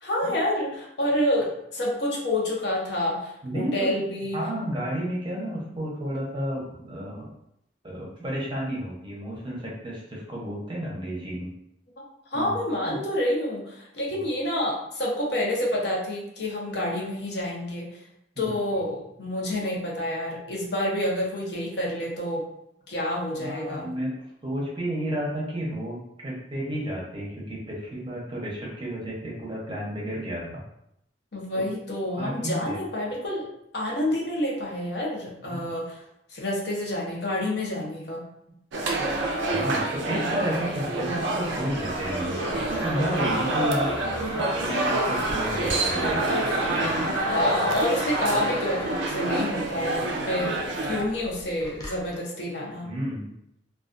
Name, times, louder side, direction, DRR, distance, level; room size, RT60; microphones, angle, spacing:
voice 1, 0.0-4.4 12.0-12.1 12.3-18.0 18.4-22.4 22.9-23.9 31.3-33.5 33.7-36.0 36.3-38.2 40.1-40.4 47.3-50.6 50.9-52.9, left 1 dB, 60° left, -2 dB, 0.6 m, -28 dB
voice 2, 3.4-4.0 4.3-7.3 7.8-11.5 12.3-12.6 12.9-13.0 18.4-18.5 23.4-24.1 24.4-30.6 31.5-31.7 32.2-32.8 35.4-35.7 39.3-46.2 52.8-53.3, right 1 dB, 25° right, -4 dB, 0.6 m, -32 dB
sound 1, 38.7-51.0, right 2 dB, 70° right, 0.4 m, -27 dB
sound 2, 41.2-52.2, left 1 dB, 20° left, 0.4 m, -38 dB
2.3 x 2.3 x 2.4 m, 0.79 s
head